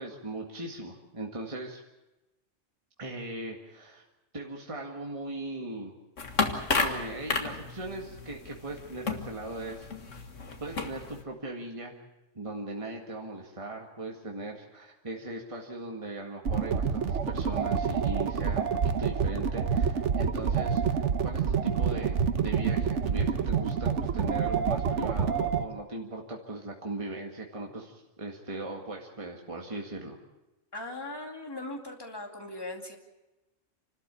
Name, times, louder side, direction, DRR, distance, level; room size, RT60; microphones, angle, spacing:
voice 1, 0.0-1.8 3.0-4.0 4.3-5.9 6.8-9.9 10.6-11.9 12.4-30.2, right 2 dB, 25° right, 0 dB, 2.1 m, -39 dB
sound 1, 6.2-11.2, left 4 dB, 80° left, 2.1 m, -33 dB
sound 2, 16.5-25.7, right 6 dB, 70° right, 1.3 m, -28 dB
voice 2, 30.7-33.0, left 2 dB, 20° left, 2 dB, 2.6 m, -39 dB
28.0 x 13.5 x 8.4 m, 1.0 s
omnidirectional pair, 1.3 m